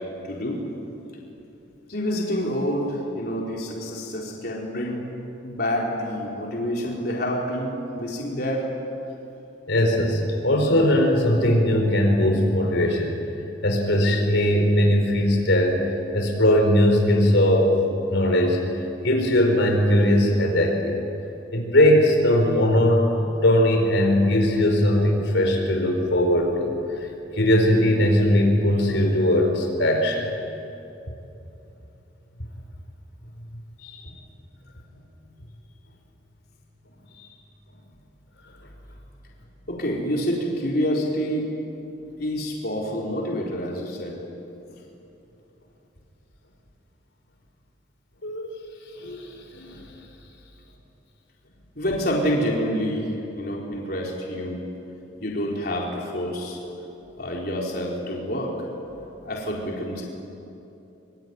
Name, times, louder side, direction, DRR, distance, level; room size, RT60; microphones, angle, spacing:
voice 1, 0.2-0.6 1.9-5.0 5.4-8.7 33.8-34.2 37.1-37.3 39.7-41.5 42.2-44.2 51.7-53.1 53.4-54.6 55.2-56.6 57.2-58.5 59.2-60.0, equal, 50° left, -2 dB, 4.4 m, -27 dB
voice 2, 9.7-13.1 13.6-15.8 16.1-17.8 18.1-18.6 19.0-21.0 21.5-23.1 23.4-26.7 27.4-30.2 48.2-48.5 49.0-49.8 56.6-56.8, left 1 dB, 75° left, 2 dB, 4.5 m, -20 dB
25.5 x 25.0 x 9.5 m, 2.9 s
head